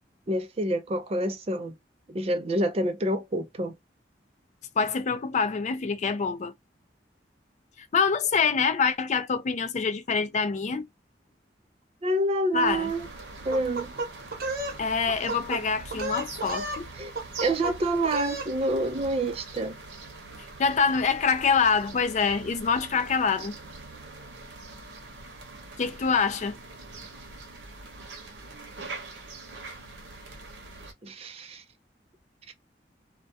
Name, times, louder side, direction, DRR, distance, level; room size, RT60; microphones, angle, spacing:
voice 1, 0.3-1.7 2.1-3.8 12.0-13.1 13.4-13.9 17.0-17.1 17.4-19.8 31.0-31.6 32.5-32.6, right 1 dB, 35° right, 0.5 m, -27 dB
voice 2, 4.8-6.5 7.9-10.8 12.5-12.9 14.8-16.9 20.6-23.6 25.8-26.6, left 5 dB, 40° left, 0.4 m, -25 dB
sound 1, 12.6-30.9, right 3 dB, 90° right, 0.8 m, -43 dB
sound 2, 13.5-14.8 15.1-15.6 15.9-16.8 17.2-17.7 18.0-18.5, right 2 dB, 55° right, 0.9 m, -32 dB
2.3 x 2.2 x 2.7 m
head